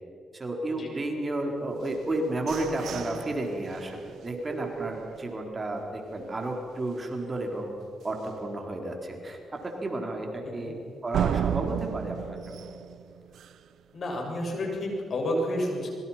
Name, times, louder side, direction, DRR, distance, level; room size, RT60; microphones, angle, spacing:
voice 1, 0.3-7.7 8.0-10.7 11.0-12.6, right 2 dB, 30° right, 2 dB, 4.5 m, -32 dB
sound 1, 1.8-5.7 6.2-6.3 6.7-7.1 7.4-7.5 8.0-8.1 11.1-13.8, right 9 dB, 80° right, 0.7 m, -34 dB
voice 2, 13.9-15.9, left 1 dB, 55° left, 1 dB, 7.1 m, -30 dB
26.0 x 23.5 x 6.1 m, 2.5 s
cardioid pair, 75°, 0 cm